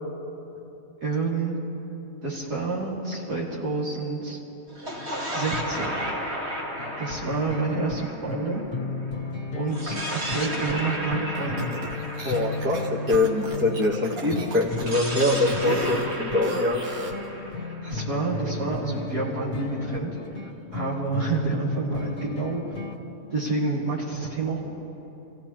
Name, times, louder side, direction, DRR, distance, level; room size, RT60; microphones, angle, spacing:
voice 1, 1.0-1.6 2.2-4.4 5.3-6.0 7.0-8.7 9.5-11.7 15.6-15.8 17.8-20.4 20.7-22.7 23.3-24.6, right 3 dB, 80° right, -6 dB, 3.4 m, -29 dB
sound 1, 4.7-9.1 9.7-13.6 14.7-18.5, equal, 40° right, 2.1 m, -34 dB
sound 2, 6.8-23.0, left 3 dB, 75° left, 1.6 m, -34 dB
sound 3, 11.3-17.3, right 2 dB, 60° right, 1.6 m, -36 dB
voice 2, 12.2-12.8 13.1-16.8, left 2 dB, 10° right, 1 dB, 0.9 m, -24 dB
26.5 x 16.0 x 2.9 m, 2.9 s
omnidirectional pair, 1.7 m